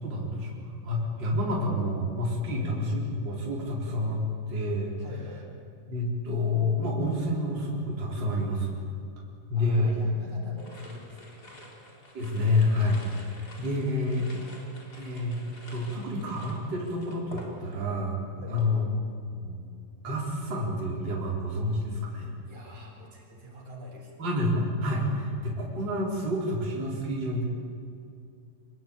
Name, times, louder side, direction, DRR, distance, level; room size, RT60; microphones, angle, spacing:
voice 1, 0.0-5.0 5.9-8.8 9.5-10.0 12.1-14.3 15.0-15.4 15.7-18.2 18.5-18.8 19.3-19.6 20.0-22.3 24.2-27.4, left 1 dB, 30° right, -3 dB, 4.6 m, -28 dB
voice 2, 5.0-5.6 9.5-11.9 18.4-18.8 22.4-24.2, right 1 dB, 55° right, 0 dB, 5.5 m, -46 dB
sound 1, 10.6-18.0 18.3-18.7, left 1 dB, 25° left, 4.3 m, -49 dB
27.0 x 21.0 x 8.8 m, 2.4 s
omnidirectional pair, 4.0 m